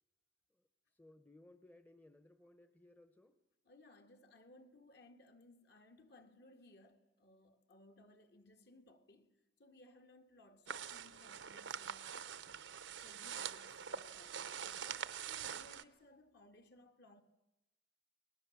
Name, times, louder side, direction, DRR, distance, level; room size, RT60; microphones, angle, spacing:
voice 1, 0.5-3.4, left 1 dB, 10° left, 0.9 m, -63 dB
voice 2, 3.7-12.4 13.0-17.2, left 1 dB, 55° left, 1.9 m, -63 dB
sound 1, 10.7-15.8, right 8 dB, 75° right, 0.9 m, -45 dB
29.5 x 20.5 x 7.2 m
head